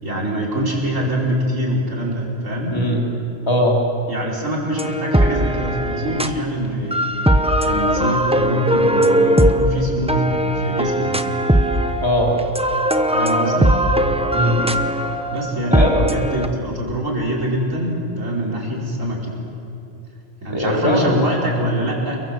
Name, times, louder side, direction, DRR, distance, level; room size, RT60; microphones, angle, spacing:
voice 1, 0.0-2.8 4.1-7.0 7.6-11.2 13.1-13.7 15.3-19.3 20.4-22.2, equal, 85° right, -4 dB, 5.4 m, -24 dB
voice 2, 3.5-3.8 12.0-12.4 14.3-14.8 15.7-16.0 20.5-21.1, left 1 dB, 20° left, -2 dB, 4.1 m, -19 dB
sound 1, 4.8-6.4 6.9-12.1 12.4-16.5, right 1 dB, 5° right, 0.7 m, -19 dB
sound 2, 10.3-15.4, equal, 75° left, 5.1 m, -31 dB
29.5 x 23.0 x 7.7 m, 2.7 s
omnidirectional pair, 1.3 m